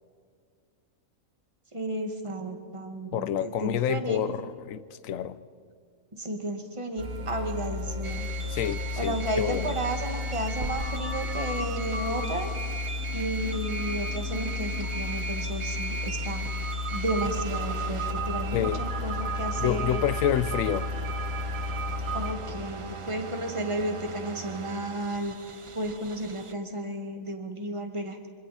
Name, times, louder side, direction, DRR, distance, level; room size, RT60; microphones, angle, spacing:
voice 1, 1.7-4.2 6.1-8.3 9.0-12.5 13.1-16.5 16.9-20.0 22.1-25.4 25.7-28.3, right 1 dB, 20° right, 4 dB, 2.0 m, -33 dB
voice 2, 3.1-5.4 8.5-9.7 18.5-18.8 19.6-20.9, left 10 dB, 70° left, 14 dB, 1.1 m, -28 dB
sound 1, 7.0-22.3, left 2 dB, 70° right, 1.9 m, -32 dB
sound 2, 8.0-26.5, right 4 dB, 40° right, 0.4 m, -40 dB
26.5 x 26.0 x 4.3 m, 2.1 s
omnidirectional pair, 1.5 m